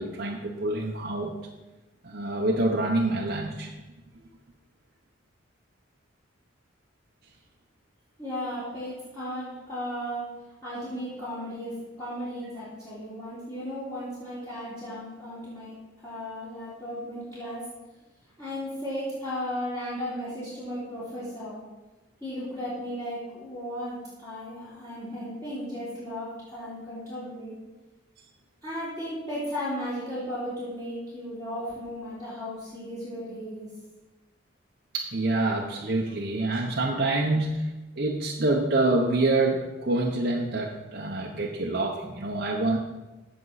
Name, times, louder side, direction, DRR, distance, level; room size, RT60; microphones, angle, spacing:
voice 1, 0.0-1.3 2.0-3.7 34.9-37.7 38.0-42.8, right 2 dB, 50° right, -2 dB, 1.0 m, -26 dB
voice 2, 8.2-10.2 10.6-17.6 18.4-21.6 22.2-27.6 28.6-33.7, equal, 15° left, -12 dB, 3.6 m, -35 dB
16.0 x 6.2 x 4.1 m, 1.1 s
head